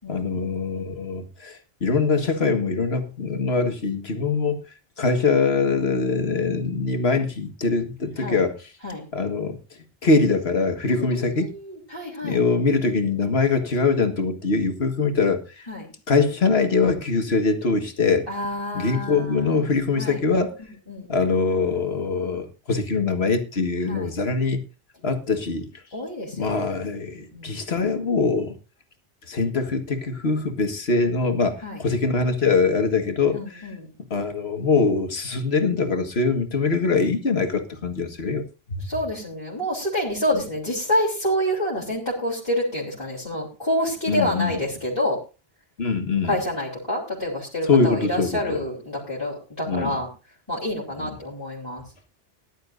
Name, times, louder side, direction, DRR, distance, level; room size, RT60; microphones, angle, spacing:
voice 1, 0.1-4.6 5.0-8.6 9.1-9.6 10.0-11.5 12.2-15.7 16.1-18.3 18.7-20.6 21.1-24.6 25.0-25.8 26.3-28.6 29.3-33.7 34.1-38.4 38.7-38.9 44.1-44.6 45.8-46.4 47.6-48.6 49.7-49.9 51.0-51.1, left 4 dB, 80° left, 2.0 m, -23 dB
voice 2, 10.9-12.4 15.7-15.9 18.3-19.7 20.0-20.2 20.9-21.3 23.9-24.1 25.9-26.7 27.0-27.6 31.6-31.8 33.3-33.9 38.8-45.2 46.2-50.1 50.5-51.8, equal, 25° left, 3.9 m, -28 dB
19.5 x 11.5 x 2.6 m
omnidirectional pair, 1.0 m